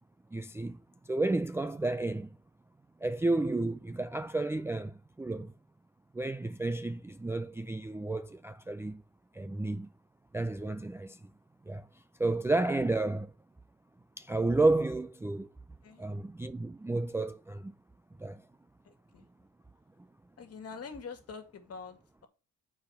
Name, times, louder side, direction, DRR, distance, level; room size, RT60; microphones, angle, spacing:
voice 1, 0.3-2.4 3.0-5.5 6.1-9.0 9.3-9.9 10.3-11.2 11.7-13.3 14.2-15.5 16.0-17.7 18.2-18.4, right 2 dB, 10° right, 0.4 m, -31 dB
voice 2, 18.8-19.3 20.4-22.3, left 5 dB, 45° left, 2.1 m, -45 dB
8.1 x 4.9 x 5.7 m
cardioid pair, 90°, 33 cm